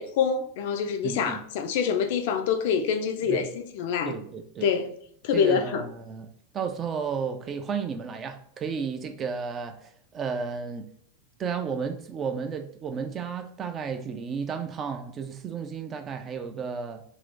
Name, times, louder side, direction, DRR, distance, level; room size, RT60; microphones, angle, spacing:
voice 1, 0.0-4.2 4.6-4.9 5.2-5.8, left 7 dB, 50° left, 0.4 m, -26 dB
voice 2, 1.0-1.4 3.2-3.5 4.1-4.7 5.3-10.9 11.4-17.0, right 6 dB, 25° right, 0.3 m, -33 dB
2.6 x 2.4 x 3.6 m
figure-of-eight pair, 90°, 0 cm